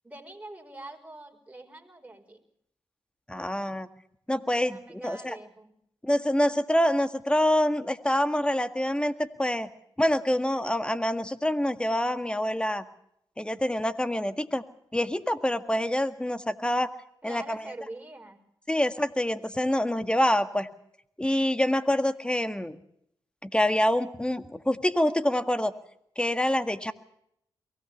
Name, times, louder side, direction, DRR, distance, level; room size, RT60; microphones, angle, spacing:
voice 1, 0.0-2.4 4.5-5.7 17.2-18.4, right 2 dB, 15° right, 3 dB, 5.0 m, -44 dB
voice 2, 3.3-3.9 4.3-5.4 6.0-9.7 10.0-12.8 13.4-14.6 14.9-16.9 17.2-17.7 18.7-20.7 21.2-22.8 23.4-25.7 26.2-26.9, left 1 dB, 10° left, 10 dB, 1.8 m, -26 dB
23.5 x 17.5 x 7.1 m, 0.73 s
cardioid pair, 55°, 9 cm